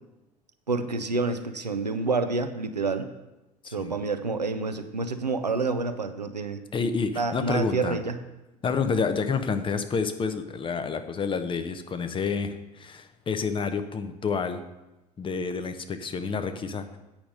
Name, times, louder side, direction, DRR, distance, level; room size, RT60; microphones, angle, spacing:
voice 1, 0.7-3.1 3.7-6.6 7.1-8.2, right 3 dB, 90° right, 9 dB, 0.5 m, -28 dB
voice 2, 6.7-8.0 8.6-14.6 15.2-17.0, left 5 dB, 25° left, 9 dB, 0.8 m, -29 dB
8.8 x 5.6 x 6.4 m, 1.0 s
figure-of-eight pair, 65°, 20 cm